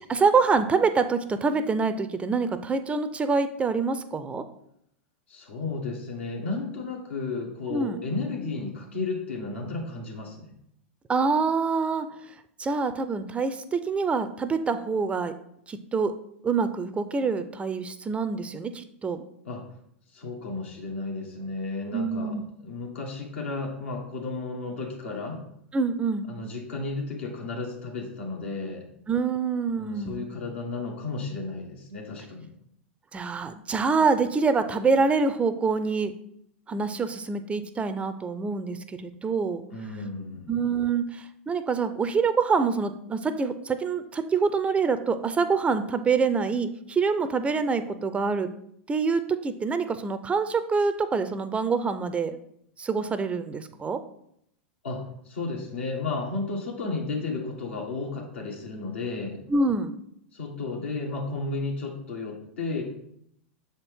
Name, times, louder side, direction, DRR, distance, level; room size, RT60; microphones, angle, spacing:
voice 1, 0.1-4.4 7.7-8.0 11.1-12.1 12.6-15.3 15.7-16.1 16.4-19.2 21.9-22.4 25.7-26.2 29.1-30.2 33.1-36.1 36.7-39.6 40.5-48.5 48.9-52.4 52.8-54.0 59.5-59.9, right 4 dB, 20° right, 11 dB, 0.4 m, -26 dB
voice 2, 5.3-10.5 19.4-19.6 20.1-25.4 26.3-28.8 29.8-32.5 39.7-40.6 54.8-59.4 60.3-62.8, left 3 dB, 75° left, 0 dB, 1.6 m, -33 dB
6.7 x 4.3 x 3.6 m, 0.73 s
hypercardioid pair, 95°, 7 cm